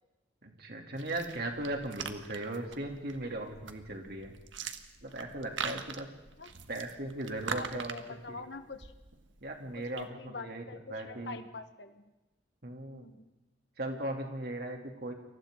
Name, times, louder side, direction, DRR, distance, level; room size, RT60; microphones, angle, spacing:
voice 1, 0.4-4.3 5.0-6.1 6.7-8.4 9.4-11.4 12.6-13.1 13.8-15.1, right 1 dB, 55° right, 2 dB, 3.2 m, -38 dB
sound 1, 1.0-10.1, right 6 dB, 85° right, 1.4 m, -43 dB
voice 2, 7.5-8.9 9.7-12.0 12.9-13.3, left 3 dB, 65° left, 8 dB, 1.4 m, -45 dB
29.5 x 24.0 x 4.0 m, 1.0 s
head